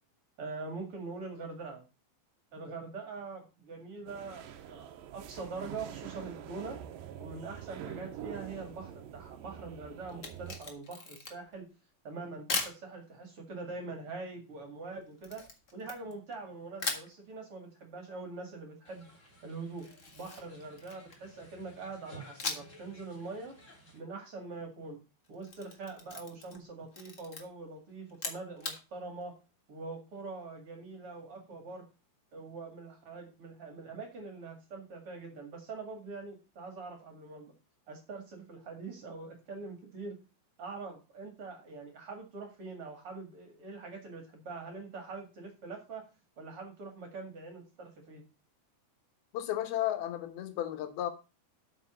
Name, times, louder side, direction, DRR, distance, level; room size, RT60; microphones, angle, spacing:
voice 1, 0.4-1.8 2.5-6.8 7.2-11.7 12.0-15.4 15.7-19.1 19.4-19.9 20.1-23.5 23.9-25.0 25.3-29.3 29.7-31.8 32.3-37.5 37.9-40.2 40.6-46.0 46.4-48.2, right 3 dB, 45° right, 2.5 m, -43 dB
sound 1, 4.1-10.6, right 10 dB, 75° right, 2.6 m, -45 dB
Camera, 10.1-11.6 12.5-12.8 15.2-16.4 16.8-17.1 19.8-21.3 22.4-22.8 23.1-23.2 25.2-26.6 26.9-27.4 28.1-28.8, left 3 dB, 60° left, 0.7 m, -38 dB
sound 2, 18.9-24.0, right 1 dB, 25° left, 2.6 m, -55 dB
voice 2, 49.3-51.1, left 12 dB, 90° left, 3.1 m, -33 dB
8.4 x 5.8 x 6.0 m
omnidirectional pair, 4.2 m